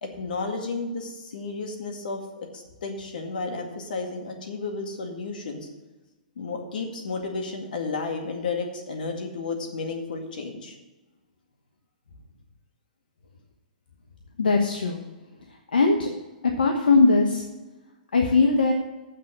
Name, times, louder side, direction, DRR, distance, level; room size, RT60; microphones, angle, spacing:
voice 1, 0.0-5.7 6.4-10.7, left 4 dB, 75° left, 3 dB, 2.1 m, -32 dB
voice 2, 14.4-15.0 15.7-16.1 16.6-17.4 18.1-18.7, left 3 dB, 90° left, 3 dB, 1.1 m, -19 dB
7.6 x 6.5 x 7.9 m, 1.1 s
hypercardioid pair, 130°, 5 cm